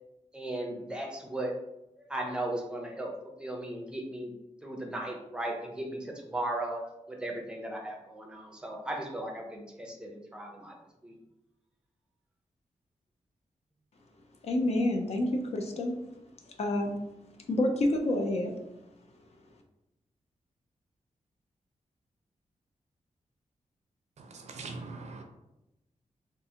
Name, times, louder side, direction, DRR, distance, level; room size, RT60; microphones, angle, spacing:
voice 1, 0.3-1.6 2.0-3.1 3.4-4.3 4.6-10.7 11.0-11.2, right 1 dB, 5° right, 0 dB, 0.5 m, -36 dB
voice 2, 14.4-15.9 16.6-17.0 17.5-18.5, left 1 dB, 55° left, 3 dB, 0.5 m, -28 dB
voice 3, 24.3-25.2, right 3 dB, 65° right, 4 dB, 0.5 m, -41 dB
3.6 x 2.4 x 2.7 m, 0.91 s
wide cardioid pair, 160°, 13 cm